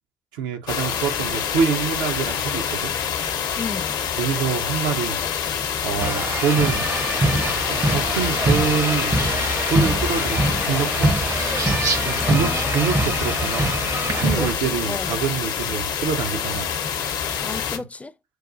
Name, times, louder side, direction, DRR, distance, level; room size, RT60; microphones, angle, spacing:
voice 1, 0.3-2.9 4.2-5.3 5.8-6.9 7.7-9.2 9.7-11.2 12.0-13.8 14.1-16.7, right 7 dB, 75° right, 0.6 m, -26 dB
sound 1, 0.7-17.8, left 7 dB, 65° left, 0.6 m, -26 dB
voice 2, 3.5-4.0 12.1-13.1 14.4-15.1 17.4-18.1, left 3 dB, 20° left, 0.4 m, -34 dB
sound 2, 6.0-14.5, right 2 dB, 30° right, 0.6 m, -24 dB
sound 3, 9.2-9.5 10.1-10.2 11.2-14.4, right 4 dB, 50° right, 0.9 m, -31 dB
6.2 x 2.3 x 2.5 m
hypercardioid pair, 50°, 8 cm